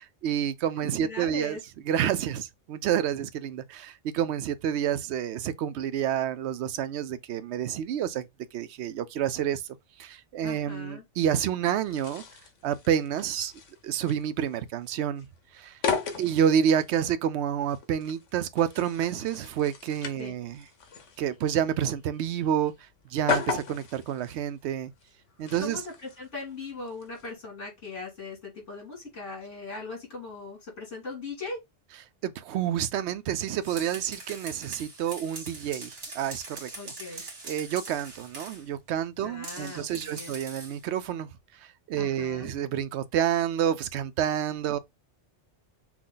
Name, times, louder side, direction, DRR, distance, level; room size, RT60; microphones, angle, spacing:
voice 1, 0.0-1.6 1.9-12.2 12.6-13.5 13.8-15.3 15.5-15.8 16.2-20.6 21.2-22.7 23.1-24.9 25.4-25.8 32.2-41.3 41.6-44.8, right 9 dB, 70° right, 0.8 m, -29 dB
voice 2, 0.8-1.6 10.4-11.0 20.2-20.3 25.6-31.6 36.8-37.2 39.2-40.4 42.0-42.5, left 3 dB, 75° left, 3.0 m, -39 dB
sound 1, 11.8-27.3, left 6 dB, 90° left, 1.3 m, -37 dB
sound 2, 33.4-38.7 39.4-40.8, right 3 dB, 90° right, 1.9 m, -42 dB
6.1 x 2.2 x 3.8 m
omnidirectional pair, 1.2 m